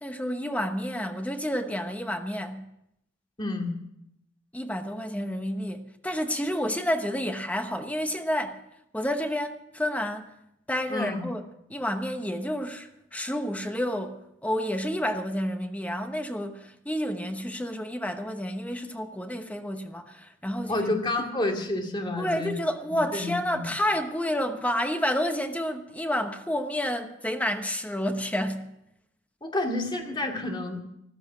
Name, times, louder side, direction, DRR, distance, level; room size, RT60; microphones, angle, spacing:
voice 1, 0.0-2.6 4.5-8.6 8.9-10.3 10.7-11.4 11.7-14.2 14.4-20.9 22.2-28.7, equal, 5° left, 1.0 m, -30 dB
voice 2, 3.4-3.7 10.9-11.2 20.7-22.6 23.1-23.6 29.4-30.8, left 2 dB, 25° left, 2.3 m, -29 dB
14.5 x 13.0 x 6.2 m
head